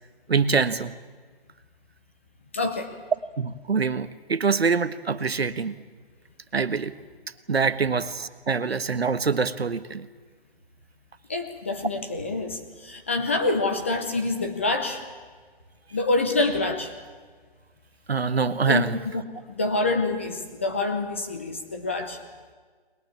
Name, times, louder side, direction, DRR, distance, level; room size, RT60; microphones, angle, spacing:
voice 1, 0.3-0.9 3.4-5.7 6.5-6.9 7.5-10.1 18.1-19.0, right 5 dB, 80° right, 13 dB, 1.4 m, -24 dB
voice 2, 2.5-2.9 11.3-15.0 15.9-16.9 18.7-18.9 19.1-19.2 19.5-22.2, left 2 dB, 15° left, 5 dB, 0.7 m, -26 dB
21.5 x 20.5 x 8.7 m, 1.5 s
hypercardioid pair, 165°, 31 cm